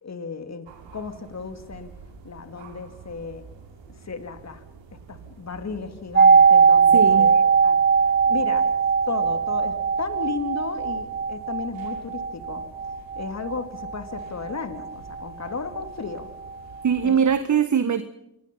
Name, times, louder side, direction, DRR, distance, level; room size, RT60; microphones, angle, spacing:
voice 1, 0.0-1.9 2.2-3.4 4.0-4.6 4.9-7.8 8.2-8.7 9.1-12.7 13.2-16.3 17.0-17.2, left 4 dB, 35° left, 8 dB, 3.1 m, -34 dB
sound 1, 0.7-17.4, right 5 dB, 65° right, 5.4 m, -48 dB
sound 2, 6.1-15.9 16.2-16.3, right 5 dB, 20° right, 1.2 m, -20 dB
voice 2, 6.9-7.3 16.8-18.0, right 7 dB, 40° right, 12 dB, 1.5 m, -21 dB
27.0 x 22.0 x 5.6 m, 0.81 s
hypercardioid pair, 50°, 47 cm